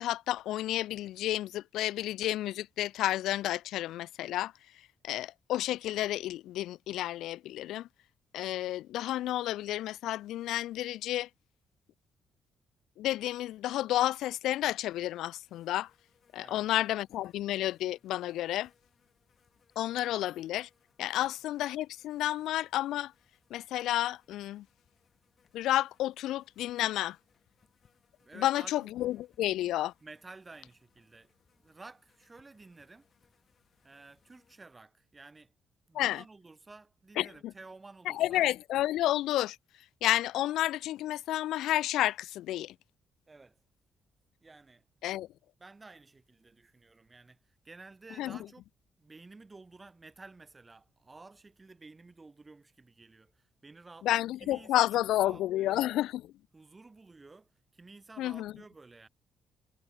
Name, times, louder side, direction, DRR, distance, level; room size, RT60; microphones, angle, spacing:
voice 1, 0.0-4.5 5.0-7.9 8.3-11.3 13.0-15.9 16.3-18.7 19.8-20.7 21.0-23.1 23.5-24.6 25.5-27.2 28.4-29.9 35.9-36.2 37.2-37.5 38.1-39.6 40.0-42.7 45.0-45.3 48.2-48.4 54.0-56.2 58.2-58.5, left 14 dB, 85° left, 0.5 m, -31 dB
sound 1, 15.5-34.6, left 6 dB, 45° left, 6.9 m, -71 dB
voice 2, 28.2-28.9 30.0-33.1 33.8-35.5 35.9-38.5 43.3-43.6 44.4-44.8 45.6-48.6 49.0-55.9 56.5-59.1, right 3 dB, 25° right, 6.1 m, -53 dB
cardioid pair, 90°, 0 cm